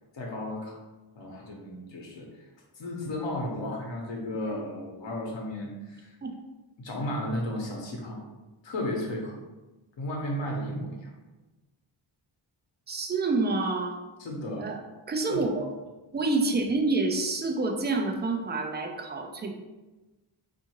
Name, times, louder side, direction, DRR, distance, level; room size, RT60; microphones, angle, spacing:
voice 1, 0.1-0.8 1.2-2.5 2.7-6.2 6.8-8.2 8.6-9.4 10.0-11.1 14.2-14.7 15.3-15.4, left 1 dB, 60° left, -1 dB, 0.9 m, -34 dB
voice 2, 12.9-14.0 14.6-14.8 15.1-15.6 16.1-19.5, right 3 dB, 20° right, 3 dB, 0.4 m, -27 dB
3.6 x 2.6 x 2.9 m, 1.1 s
cardioid pair, 75°, 50 cm